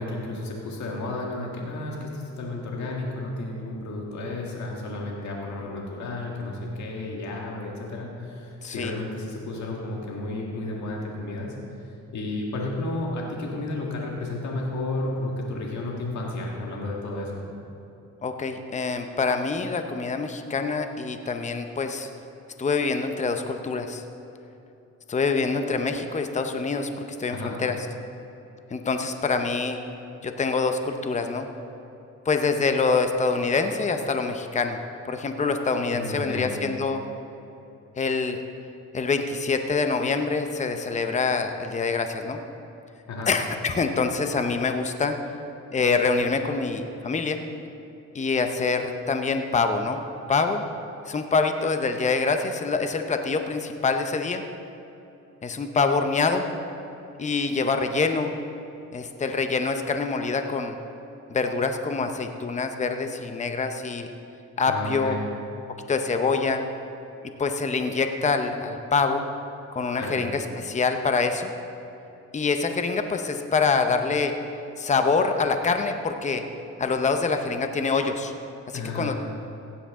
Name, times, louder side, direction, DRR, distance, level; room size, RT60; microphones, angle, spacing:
voice 1, 0.0-11.5 12.1-17.4 27.3-27.5 35.9-36.5 43.1-43.3 64.7-65.3 70.0-70.2 78.7-79.2, left 2 dB, 65° left, -2 dB, 1.9 m, -32 dB
voice 2, 8.6-8.9 18.2-22.1 22.6-24.0 25.1-26.9 27.2-27.8 28.7-29.8 30.2-31.5 32.3-34.8 35.1-37.0 38.0-38.4 38.9-42.4 43.3-45.2 45.7-47.4 48.1-50.0 50.3-50.6 51.1-54.4 55.4-56.5 57.2-58.3 58.9-60.8 61.3-64.1 64.6-65.2 65.9-66.6 67.4-69.2 69.7-71.5 72.3-74.3 74.8-76.4 76.8-78.3 78.7-79.2, left 4 dB, 25° left, 6 dB, 0.8 m, -25 dB
16.0 x 9.9 x 3.7 m, 2.9 s
cardioid pair, 90°, 30 cm